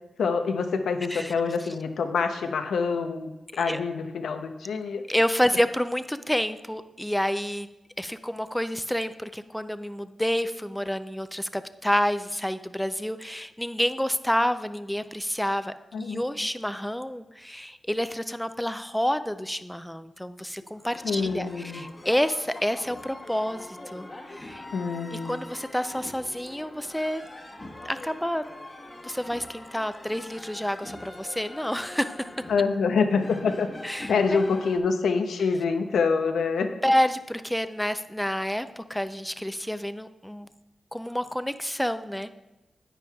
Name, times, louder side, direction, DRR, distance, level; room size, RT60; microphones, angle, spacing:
voice 1, 0.2-5.0 15.9-16.2 21.0-21.8 24.7-25.4 32.5-33.7 34.1-36.7, left 5 dB, 90° left, 6 dB, 0.7 m, -26 dB
voice 2, 5.1-7.7 8.0-24.6 25.1-27.2 27.9-28.4 29.0-32.3 33.8-34.4 36.8-40.5 40.9-42.3, equal, 5° left, 11 dB, 0.5 m, -29 dB
sound 1, 20.8-34.8, left 2 dB, 35° left, 1.2 m, -43 dB
9.9 x 9.1 x 2.3 m, 1.0 s
cardioid pair, 55°, 0 cm